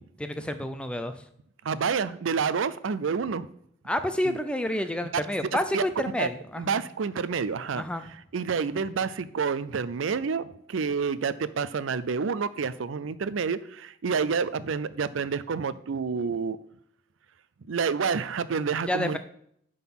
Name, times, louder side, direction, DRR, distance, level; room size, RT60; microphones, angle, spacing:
voice 1, 0.2-1.2 3.9-6.8 7.7-8.0 18.9-19.2, left 1 dB, 5° left, 9 dB, 0.5 m, -29 dB
voice 2, 1.6-3.5 4.2-4.4 5.7-5.8 6.2-6.3 6.6-7.8 8.3-16.6 17.7-19.2, right 5 dB, 75° right, 15 dB, 0.5 m, -28 dB
11.0 x 3.9 x 5.9 m, 0.69 s
head